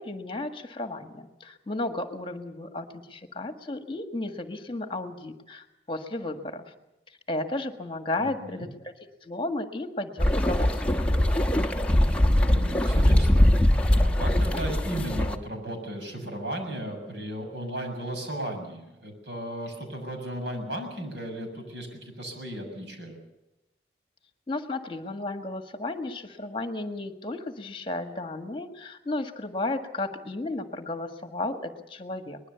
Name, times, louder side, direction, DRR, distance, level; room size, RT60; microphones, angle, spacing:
voice 1, 0.0-6.7 7.1-8.9 9.2-10.9 24.5-32.4, left 2 dB, 30° left, 6 dB, 1.7 m, -34 dB
voice 2, 8.2-8.7 12.2-23.1, right 1 dB, 90° right, 5 dB, 6.8 m, -35 dB
sound 1, 10.2-15.4, left 1 dB, 5° left, 1.1 m, -22 dB
23.5 x 20.5 x 7.0 m, 0.97 s
head